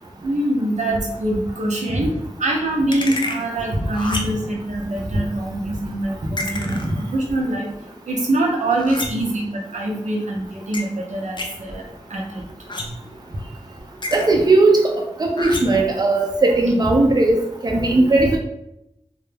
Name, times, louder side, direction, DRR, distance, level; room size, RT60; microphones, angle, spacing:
voice 1, 0.2-2.1 2.4-7.7 8.1-11.8 12.1-12.4, right 1 dB, 80° right, -2 dB, 0.6 m, -24 dB
sound 1, 2.9-3.5 3.9-4.5 6.4-7.1 8.7-9.3 10.7-10.8 11.4-11.5 12.7-13.1 14.0-14.4 15.4-15.9, left 2 dB, 40° left, 0.4 m, -29 dB
voice 2, 14.1-18.4, right 2 dB, 35° right, 1 dB, 0.4 m, -17 dB
2.2 x 2.0 x 3.2 m, 0.83 s
cardioid pair, 45°, 12 cm